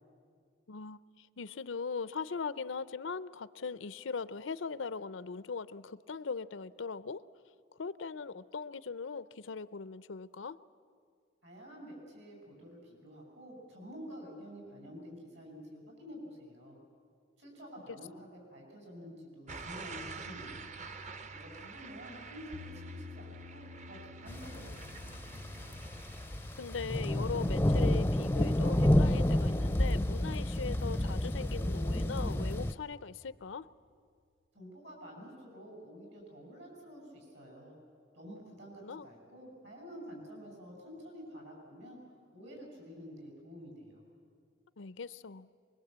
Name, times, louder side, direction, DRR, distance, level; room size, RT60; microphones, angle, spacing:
voice 1, 0.7-7.2 7.8-10.6 26.6-33.7 38.8-39.1 44.8-45.5, left 5 dB, 85° left, 16 dB, 0.6 m, -40 dB
voice 2, 11.4-16.8 17.4-20.7 21.3-25.4 34.5-37.8 38.1-42.0 42.3-44.0, equal, 70° right, 1 dB, 7.9 m, -49 dB
sound 1, 19.5-30.3 30.7-31.1, right 4 dB, 35° right, 0.7 m, -49 dB
sound 2, 22.5-30.6, left 4 dB, 85° right, 1.5 m, -53 dB
sound 3, 24.3-32.7, left 1 dB, 10° left, 0.5 m, -30 dB
24.0 x 22.0 x 8.1 m, 2.2 s
head